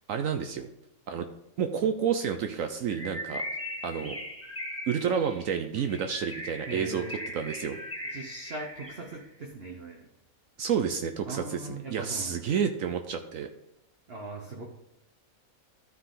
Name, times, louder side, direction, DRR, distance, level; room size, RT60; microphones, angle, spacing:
voice 1, 0.1-0.7 1.1-1.3 1.6-3.4 3.8-4.2 4.9-7.0 7.3-7.8 10.6-13.5, right 7 dB, 70° right, 6 dB, 1.0 m, -30 dB
Bird, 2.9-9.2, left 1 dB, 10° left, 1.3 m, -39 dB
voice 2, 6.7-7.3 8.1-10.1 11.3-12.3 14.1-14.6, right 2 dB, 45° right, 0 dB, 1.2 m, -40 dB
13.5 x 4.7 x 3.8 m, 0.88 s
omnidirectional pair, 1.5 m